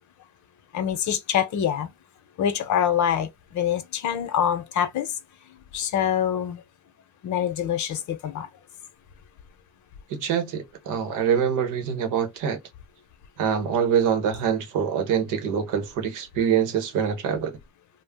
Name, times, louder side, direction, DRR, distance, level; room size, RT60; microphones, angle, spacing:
voice 1, 0.7-1.9 2.4-3.3 3.5-5.1 5.7-6.6 7.2-8.5, left 9 dB, 70° left, 0.7 m, -25 dB
voice 2, 10.1-12.6 13.4-17.5, right 7 dB, 90° right, 0.9 m, -25 dB
2.4 x 2.0 x 3.4 m
cardioid pair, 90°, 30 cm